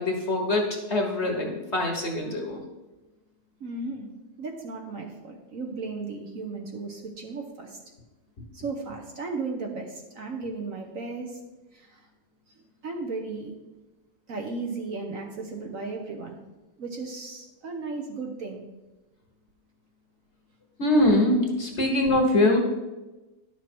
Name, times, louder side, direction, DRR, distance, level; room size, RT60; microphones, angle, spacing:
voice 1, 0.0-2.6 20.8-22.6, left 1 dB, 40° left, 1 dB, 1.4 m, -23 dB
voice 2, 3.6-4.1 4.4-7.8 8.5-11.4 11.7-12.1 12.6-13.6 14.3-16.4 16.8-18.7, right 3 dB, 55° right, 3 dB, 1.2 m, -35 dB
11.0 x 6.2 x 4.4 m, 1.1 s
omnidirectional pair, 1.9 m